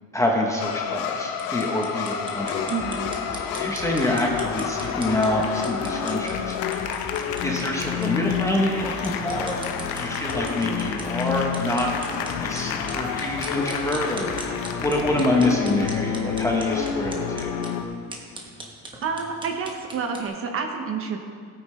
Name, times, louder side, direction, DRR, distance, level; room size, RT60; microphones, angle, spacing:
voice 1, 0.1-2.7 3.3-6.6 7.4-9.6 9.9-11.9 12.4-14.5 14.8-17.5, left 1 dB, 10° left, -1 dB, 0.8 m, -26 dB
sound 1, 0.6-17.8, left 7 dB, 75° left, 0.9 m, -29 dB
sound 2, 1.3-20.3, right 2 dB, 15° right, 1.0 m, -42 dB
sound 3, 2.7-17.7, left 2 dB, 25° left, 2.4 m, -42 dB
voice 2, 2.7-3.1 19.0-21.2, right 5 dB, 40° right, 4 dB, 1.0 m, -29 dB
16.5 x 8.8 x 3.2 m, 2.1 s
cardioid pair, 175°, 36 cm